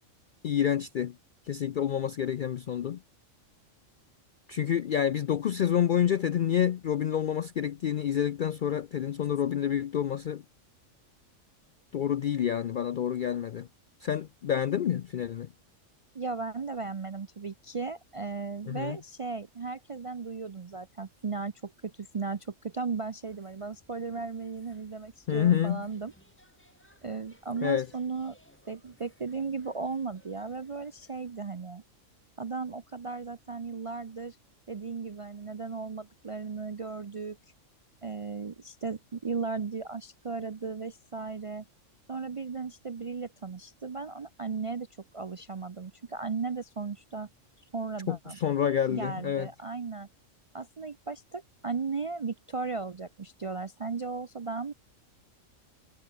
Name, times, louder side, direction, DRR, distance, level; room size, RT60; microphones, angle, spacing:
voice 1, 0.4-1.2 1.5-3.0 4.5-10.4 11.9-13.7 14.0-15.5 18.7-19.0 25.3-25.8 27.6-27.9 48.1-49.5, left 9 dB, 65° left, 0.5 m, -28 dB
voice 2, 16.1-26.1 27.0-28.4 28.7-31.8 32.4-34.4 34.7-37.4 38.0-41.6 42.1-44.9 45.1-47.3 47.7-48.4 48.9-50.1 50.5-54.7, right 4 dB, 45° right, 0.4 m, -36 dB
sound 1, 23.3-31.3, equal, 10° left, 6.3 m, -62 dB
omnidirectional pair, 1.4 m